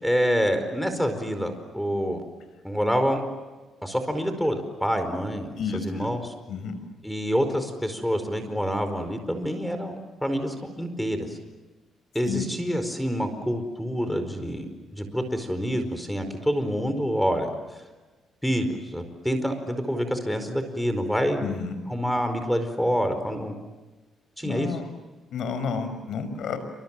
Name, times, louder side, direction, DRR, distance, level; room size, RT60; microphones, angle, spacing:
voice 1, 0.0-2.2 2.6-3.2 3.8-6.3 7.0-11.3 12.1-17.5 18.4-21.4 21.9-23.5 24.4-24.7, equal, ahead, 8 dB, 4.7 m, -27 dB
voice 2, 5.6-6.1 6.5-6.7 12.3-12.5 21.4-21.8 24.4-24.8 25.3-26.6, left 6 dB, 70° left, 10 dB, 5.8 m, -31 dB
28.5 x 26.5 x 7.6 m, 1.2 s
cardioid pair, 90°, 0 cm